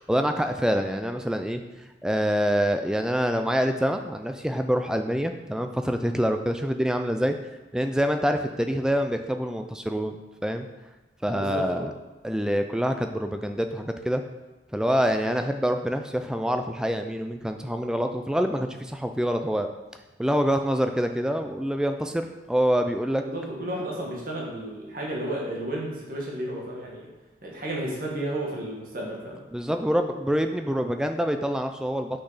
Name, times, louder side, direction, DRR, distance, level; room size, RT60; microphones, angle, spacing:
voice 1, 0.1-1.6 2.0-7.3 7.7-10.7 11.2-11.9 12.2-14.2 14.7-19.7 20.2-23.2 29.5-32.2, equal, 5° right, 6 dB, 0.3 m, -26 dB
voice 2, 11.3-11.9 23.1-27.1 27.4-29.4, right 1 dB, 45° right, -3 dB, 1.6 m, -32 dB
6.4 x 6.0 x 4.1 m, 1.1 s
head